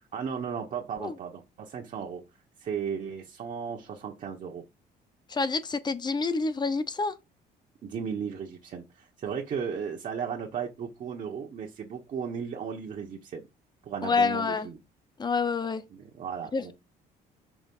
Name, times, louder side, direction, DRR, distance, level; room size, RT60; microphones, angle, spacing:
voice 1, 0.1-2.2 2.6-4.6 7.8-13.5 13.8-14.8 15.9-16.7, right 7 dB, 50° right, 1.3 m, -35 dB
voice 2, 5.3-7.1 14.0-14.7 15.2-15.8 16.5-16.7, left 4 dB, 25° left, 0.9 m, -27 dB
6.2 x 3.6 x 5.4 m
cardioid pair, 110°, 17 cm